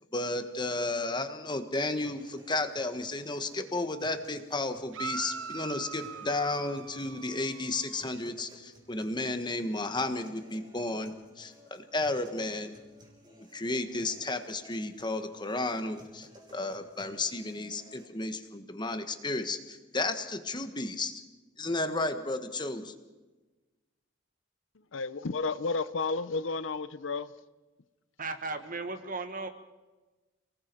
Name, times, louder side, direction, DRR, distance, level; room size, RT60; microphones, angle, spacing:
voice 1, 0.1-12.8 13.4-21.2 21.6-22.9, left 2 dB, 25° left, 8 dB, 1.5 m, -33 dB
sound 1, 2.0-18.1, equal, 25° right, 5.4 m, -57 dB
sound 2, 4.9-8.2, right 6 dB, 80° right, 0.7 m, -41 dB
voice 2, 24.9-27.3, left 4 dB, 70° left, 15 dB, 0.7 m, -32 dB
voice 3, 28.2-29.5, right 3 dB, 45° right, 9 dB, 1.6 m, -36 dB
29.5 x 19.0 x 4.7 m, 1.2 s
head